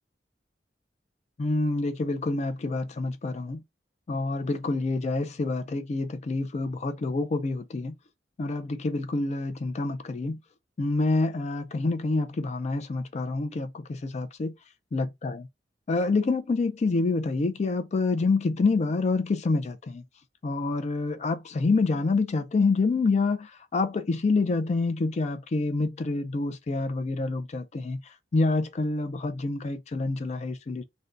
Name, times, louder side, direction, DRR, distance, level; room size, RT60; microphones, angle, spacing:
voice 1, 1.4-3.6 4.1-7.9 8.4-10.4 10.8-14.5 14.9-15.5 15.9-20.0 20.4-30.8, left 3 dB, 40° left, 0.4 m, -27 dB
2.6 x 2.1 x 3.5 m
head